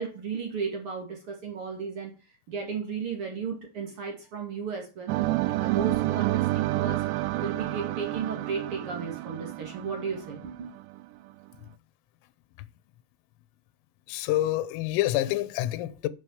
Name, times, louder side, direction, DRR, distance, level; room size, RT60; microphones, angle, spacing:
voice 1, 0.0-2.1 2.5-5.2 5.6-7.0 7.4-10.7, right 5 dB, 55° right, 1.5 m, -34 dB
sound 1, 5.1-11.0, right 18 dB, 90° right, 2.5 m, -29 dB
voice 2, 14.1-16.1, left 15 dB, 90° left, 3.3 m, -27 dB
8.8 x 6.6 x 7.0 m
omnidirectional pair, 5.8 m